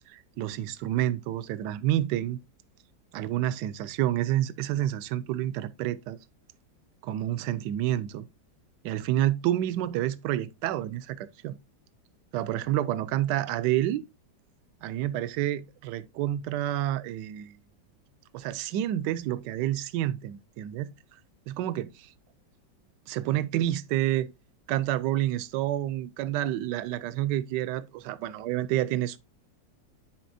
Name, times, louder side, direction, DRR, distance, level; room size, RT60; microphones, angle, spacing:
voice 1, 0.1-2.4 3.1-6.2 7.0-8.3 8.8-11.6 12.3-14.0 14.8-17.5 18.3-20.9 21.5-22.1 23.1-24.3 24.7-29.2, right 13 dB, 75° right, 1.2 m, -29 dB
10.0 x 4.3 x 2.5 m
omnidirectional pair, 1.9 m